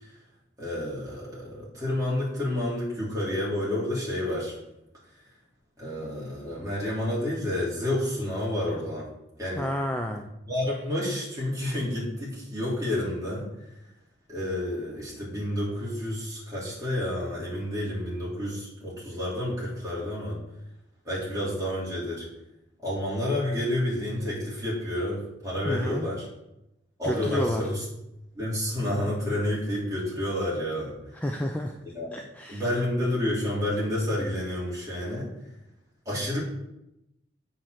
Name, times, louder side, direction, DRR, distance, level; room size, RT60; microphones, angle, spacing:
voice 1, 0.6-4.5 5.8-9.1 9.4-9.6 10.1-10.2 10.5-13.5 14.3-20.4 21.0-22.3 22.8-26.3 27.0-27.8 28.3-30.9 31.8-32.1 32.5-35.3 36.0-36.4, left 1 dB, 20° right, -7 dB, 3.0 m, -29 dB
voice 2, 9.6-10.3 25.7-26.1 27.0-27.6 31.1-31.8 32.1-32.7, left 1 dB, 10° left, 3 dB, 0.4 m, -30 dB
7.7 x 4.3 x 6.5 m, 0.88 s
head